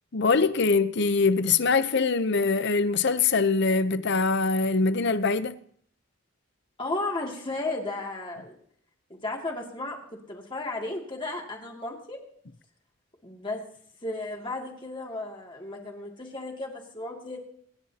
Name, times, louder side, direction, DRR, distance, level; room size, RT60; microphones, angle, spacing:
voice 1, 0.1-5.6, left 4 dB, 55° left, 0.8 m, -23 dB
voice 2, 6.8-8.6 9.1-12.2 13.2-13.6 14.0-17.4, left 2 dB, 25° left, 2.5 m, -34 dB
24.0 x 10.5 x 2.9 m
head